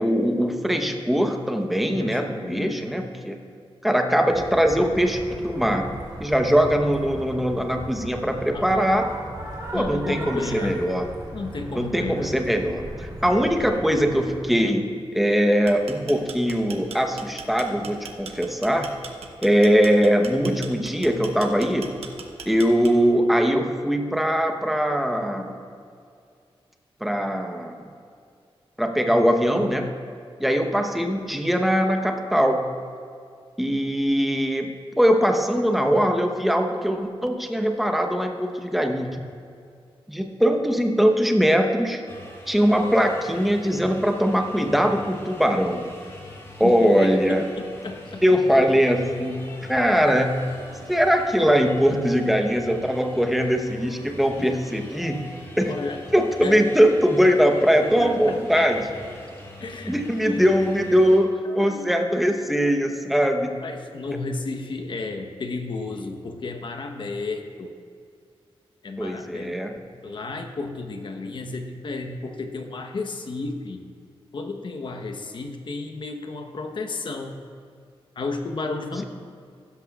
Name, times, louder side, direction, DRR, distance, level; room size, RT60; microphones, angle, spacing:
voice 1, 0.0-3.4 3.8-5.9 6.2-9.1 9.7-11.1 11.7-14.9 15.1-18.9 19.4-21.9 22.5-25.6 27.0-27.7 28.8-30.0 30.4-32.7 33.6-39.2 40.1-42.0 42.5-45.9 46.6-47.4 48.2-50.5 50.9-55.3 55.6-55.7 56.1-58.8 59.8-61.3 61.5-63.6 69.0-69.8, equal, ahead, 3 dB, 0.9 m, -21 dB
voice 2, 2.0-2.9 8.5-8.8 9.7-10.8 11.3-12.3 46.6-48.2 54.4-54.5 55.6-56.0 56.4-56.6 58.0-58.7 59.6-59.9 60.2-60.5 61.4-62.0 63.6-67.7 68.8-69.6 70.0-73.8 74.3-77.4 78.2-79.0, left 3 dB, 55° left, 5 dB, 1.0 m, -32 dB
sound 1, 4.3-14.4, right 1 dB, 40° right, 2.9 m, -37 dB
sound 2, 15.5-23.2, right 5 dB, 85° right, 0.9 m, -39 dB
sound 3, 42.1-61.2, left 1 dB, 30° left, 2.2 m, -43 dB
15.5 x 13.0 x 2.4 m, 2.2 s
wide cardioid pair, 110°, 10 cm